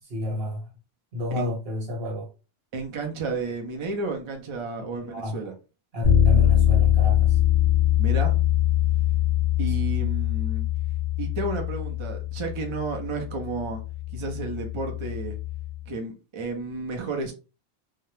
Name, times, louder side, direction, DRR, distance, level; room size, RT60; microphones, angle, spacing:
voice 1, 0.0-0.7 1.1-2.3 4.8-5.5 5.9-7.4, left 1 dB, 65° right, 1.2 m, -31 dB
voice 2, 2.7-5.5 8.0-8.4 9.6-10.7 11.2-13.8 14.1-15.4 15.9-17.3, right 3 dB, 40° right, 0.4 m, -32 dB
Bass guitar, 6.0-15.8, left 11 dB, 55° left, 0.7 m, -23 dB
2.3 x 2.0 x 3.0 m
omnidirectional pair, 1.1 m